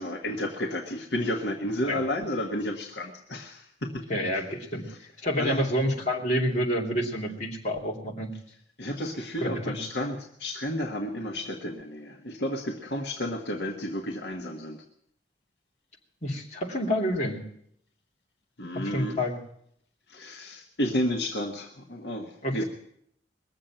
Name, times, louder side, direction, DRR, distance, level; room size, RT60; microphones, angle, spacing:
voice 1, 0.0-4.0 4.3-4.4 4.9-5.0 5.4-5.6 8.8-14.8 18.6-19.2 20.1-22.6, left 1 dB, 75° left, 2 dB, 1.6 m, -32 dB
voice 2, 4.1-4.8 5.2-8.3 9.4-9.8 16.2-17.4 18.7-19.4 22.4-22.6, equal, 40° left, -2 dB, 2.8 m, -28 dB
21.0 x 7.6 x 9.0 m, 0.71 s
head